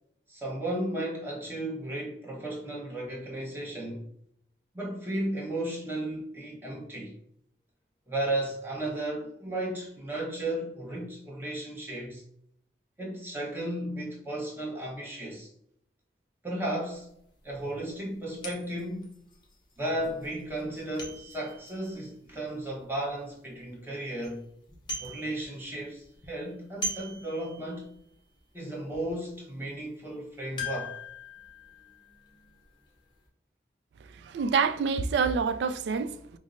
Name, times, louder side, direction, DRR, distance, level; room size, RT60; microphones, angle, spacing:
voice 1, 0.3-4.1 4.7-7.1 8.1-12.2 13.0-15.5 16.4-17.1 17.4-19.1 19.8-24.5 25.0-27.9 28.5-31.0, right 1 dB, 10° right, 0.9 m, -34 dB
sound 1, 16.9-17.0 17.5-17.6 18.4-23.1 23.6-23.7 24.0-24.4 24.6-25.8 26.0-28.0 28.4-28.5 28.9-29.1 30.6-33.0 33.2-33.3, left 1 dB, 25° left, 0.7 m, -41 dB
voice 2, 34.1-36.4, right 5 dB, 80° right, 0.3 m, -27 dB
5.1 x 2.0 x 2.5 m
head